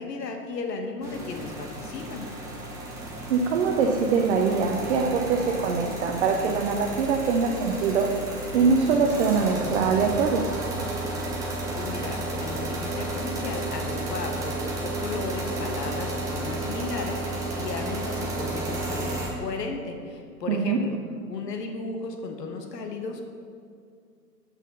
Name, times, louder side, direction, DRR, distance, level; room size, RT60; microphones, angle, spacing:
voice 1, 0.0-2.3 11.7-21.0 21.3-23.2, left 4 dB, 75° left, 4 dB, 1.2 m, -35 dB
sound 1, 1.0-19.3, right 2 dB, 5° right, 0.5 m, -32 dB
voice 2, 3.3-8.1 8.5-10.4 20.5-20.8, right 5 dB, 45° right, 2 dB, 0.7 m, -23 dB
6.1 x 5.7 x 5.4 m, 2.2 s
hypercardioid pair, 130°, 49 cm